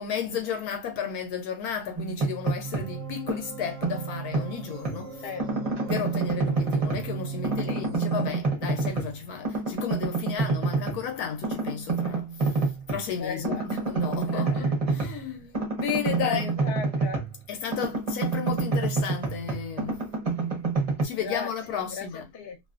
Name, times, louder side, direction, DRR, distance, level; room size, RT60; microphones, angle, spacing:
voice 1, 0.0-5.2 5.9-12.6 12.9-16.5 17.5-20.0 21.0-22.2, left 7 dB, 75° left, 1.0 m, -33 dB
sound 1, 2.0-3.0 3.3-5.0 5.4-7.1 7.4-9.2 9.4-11.0 11.4-13.1 13.4-17.4 17.7-21.0, right 4 dB, 40° right, 0.5 m, -28 dB
sound 2, 2.6-8.3, right 6 dB, 65° right, 0.8 m, -38 dB
voice 2, 13.2-13.9 14.2-14.7 15.3-15.5 16.2-17.3 21.1-22.6, left 5 dB, 50° left, 0.8 m, -37 dB
2.5 x 2.4 x 2.4 m
omnidirectional pair, 1.7 m